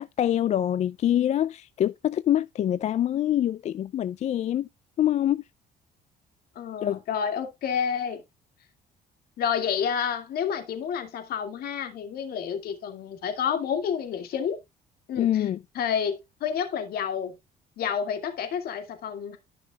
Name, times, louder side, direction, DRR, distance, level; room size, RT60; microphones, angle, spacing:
voice 1, 0.0-4.7 5.0-5.4 6.8-7.0 15.2-15.6, left 11 dB, 45° left, 0.4 m, -25 dB
voice 2, 6.6-8.2 9.4-14.6 15.1-15.5 15.8-17.4 17.8-19.4, left 7 dB, 65° left, 2.2 m, -29 dB
14.0 x 6.0 x 2.3 m
cardioid pair, 110°, 17 cm